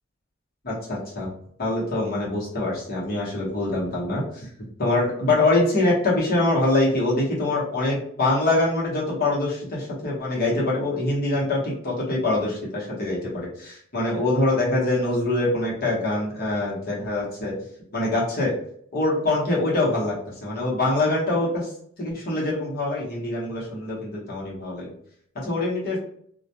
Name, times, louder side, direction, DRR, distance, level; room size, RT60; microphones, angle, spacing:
voice 1, 0.6-1.3 1.6-4.5 4.8-17.5 17.9-18.5 18.9-20.1 20.4-21.7 22.0-24.9 25.4-26.0, left 2 dB, 45° left, -4 dB, 0.9 m, -24 dB
2.3 x 2.1 x 2.7 m, 0.65 s
head